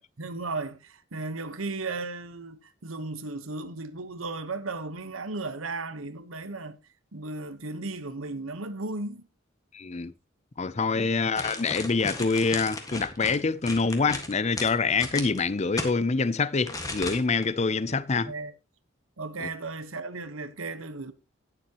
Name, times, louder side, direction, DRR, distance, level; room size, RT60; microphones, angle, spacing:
voice 1, 0.0-6.8 7.1-9.3 10.9-11.1 17.9-18.5 19.2-21.1, right 3 dB, 90° right, 1.2 m, -35 dB
voice 2, 9.7-10.1 10.6-18.3 19.4-19.5, left 4 dB, 35° left, 0.5 m, -26 dB
sound 1, 11.3-15.9 16.7-17.5 17.8-17.9, left 2 dB, 15° left, 1.7 m, -35 dB
18.0 x 7.3 x 3.0 m
head